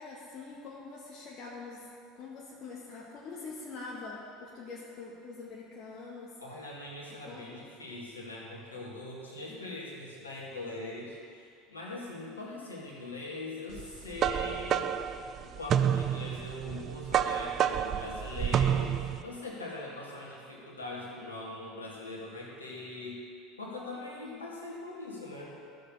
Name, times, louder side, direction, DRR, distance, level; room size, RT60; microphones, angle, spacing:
voice 1, 0.0-1.9 2.1-6.3 7.3-7.6 9.5-9.7 12.3-12.5 24.2-24.5, left 4 dB, 45° left, -5 dB, 1.6 m, -44 dB
voice 2, 6.4-14.9 15.4-23.2 23.6-25.5, left 2 dB, 90° left, -3 dB, 2.1 m, -42 dB
sound 1, 13.8-19.2, right 9 dB, 40° right, 0.4 m, -29 dB
14.0 x 6.7 x 5.5 m, 2.4 s
hypercardioid pair, 75°, 0 cm